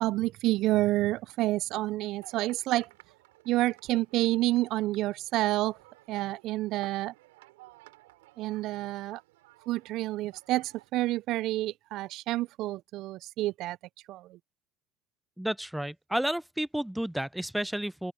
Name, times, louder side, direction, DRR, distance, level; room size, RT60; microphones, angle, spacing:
voice 1, 0.0-2.9 3.5-5.8 6.1-7.1 8.4-9.2 9.7-13.8 14.1-14.4, right 17 dB, 65° right, 0.3 m, -29 dB
sound 1, 2.2-10.9, right 20 dB, 85° right, 5.7 m, -56 dB
voice 2, 15.4-18.1, right 1 dB, 5° right, 0.5 m, -31 dB
open air
supercardioid pair, 85°, 0 cm